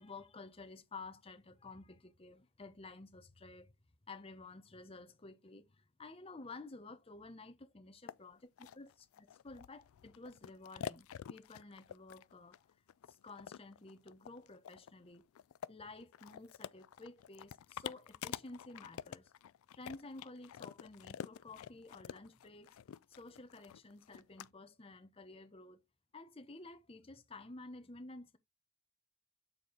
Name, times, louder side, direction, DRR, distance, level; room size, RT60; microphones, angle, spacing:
voice 1, 0.0-3.7 4.1-12.6 13.1-15.3 15.7-19.3 19.7-22.8 23.2-25.8 26.1-28.4, left 3 dB, 25° left, 0.8 m, -52 dB
sound 1, 8.1-8.2 8.6-24.5, left 9 dB, 70° left, 0.3 m, -48 dB
6.7 x 4.4 x 3.8 m
head